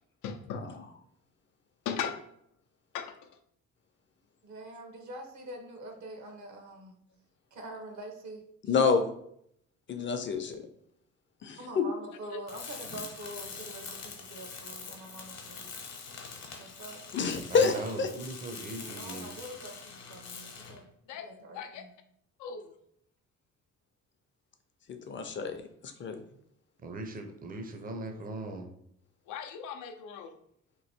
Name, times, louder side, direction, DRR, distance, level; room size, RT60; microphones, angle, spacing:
voice 1, 0.2-0.6 1.9-2.2 2.9-3.1 12.3-12.4 21.1-21.3 21.5-21.8 22.4-22.7 29.3-30.4, left 7 dB, 85° left, 6 dB, 0.5 m, -37 dB
voice 2, 4.4-7.0 7.5-9.0 11.6-15.8 16.6-17.0 18.8-20.8 21.1-21.9, right 1 dB, 70° right, 3 dB, 1.0 m, -45 dB
voice 3, 8.7-9.0 9.9-10.6 11.4-11.8 17.1-18.1 24.9-26.2, left 5 dB, 40° left, 7 dB, 0.5 m, -28 dB
Tools, 12.5-20.9, left 5 dB, 60° left, 1.0 m, -44 dB
voice 4, 17.5-19.4 26.8-28.7, right 2 dB, 30° right, 5 dB, 0.6 m, -39 dB
3.0 x 2.6 x 4.3 m, 0.71 s
cardioid pair, 90°, 30 cm